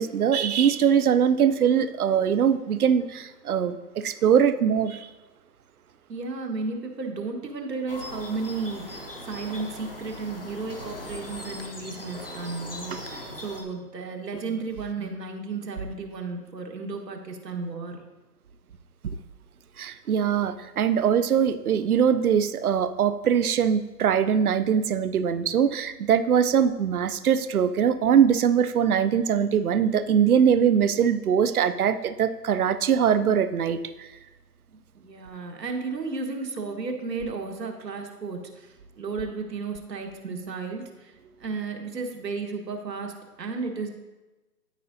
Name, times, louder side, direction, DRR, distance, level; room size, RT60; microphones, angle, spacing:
voice 1, 0.0-5.1 19.0-19.2 19.8-33.8, right 8 dB, 60° right, 11 dB, 0.6 m, -22 dB
voice 2, 6.1-18.1 34.7-43.9, right 4 dB, 80° right, 3 dB, 1.6 m, -34 dB
sound 1, 7.9-13.6, left 1 dB, 35° left, 0.7 m, -39 dB
13.0 x 4.8 x 2.7 m, 1.1 s
hypercardioid pair, 180°, 49 cm